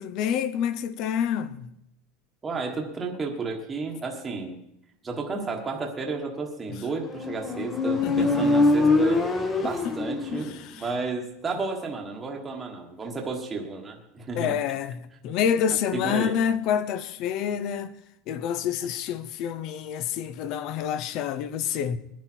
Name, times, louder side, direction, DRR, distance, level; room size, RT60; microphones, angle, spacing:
voice 1, 0.0-1.7 6.7-6.8 8.0-8.5 9.6-10.0 10.3-10.9 14.4-17.9 18.3-22.0, left 8 dB, 40° left, 0.7 m, -28 dB
voice 2, 2.4-4.6 5.0-9.2 9.6-10.5 10.8-14.6 15.9-16.3, right 3 dB, 10° right, 1.4 m, -32 dB
Motorcycle, 7.0-10.7, left 2 dB, 15° left, 1.2 m, -23 dB
20.5 x 10.5 x 4.5 m
supercardioid pair, 175°, 0 cm